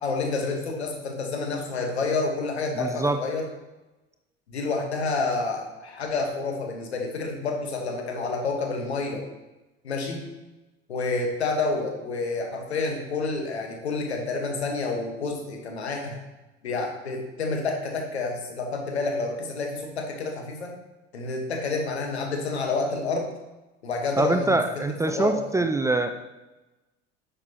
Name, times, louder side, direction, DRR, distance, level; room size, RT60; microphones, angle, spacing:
voice 1, 0.0-3.5 4.5-9.3 9.8-10.2 10.9-16.2 16.6-20.7 21.1-23.3 23.8-25.6, left 3 dB, 75° left, 2 dB, 1.5 m, -29 dB
voice 2, 2.7-3.2 24.2-26.1, right 2 dB, 10° right, 7 dB, 0.5 m, -24 dB
10.5 x 6.4 x 3.0 m, 1.1 s
figure-of-eight pair, 65°, 33 cm